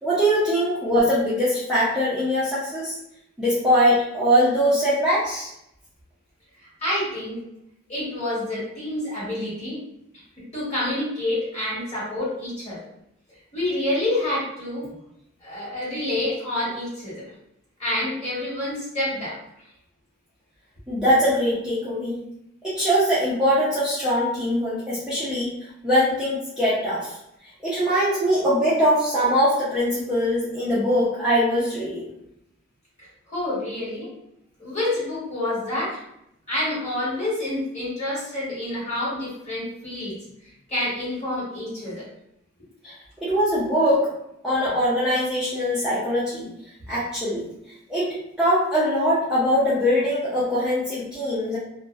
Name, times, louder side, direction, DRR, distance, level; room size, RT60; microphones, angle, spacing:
voice 1, 0.0-3.0 3.4-5.5 20.9-22.2 22.6-25.5 25.8-27.2 27.6-32.1 42.8-44.1 44.4-46.5 46.9-47.5 47.9-48.1 48.4-51.6, equal, 5° right, -11 dB, 0.5 m, -22 dB
voice 2, 6.8-7.4 7.9-9.8 10.5-12.8 13.5-14.9 15.4-17.2 17.8-19.4 33.3-34.1 34.6-36.0 36.5-40.1 40.7-42.0, left 1 dB, 35° left, -9 dB, 1.3 m, -28 dB
2.3 x 2.1 x 2.6 m, 0.79 s
head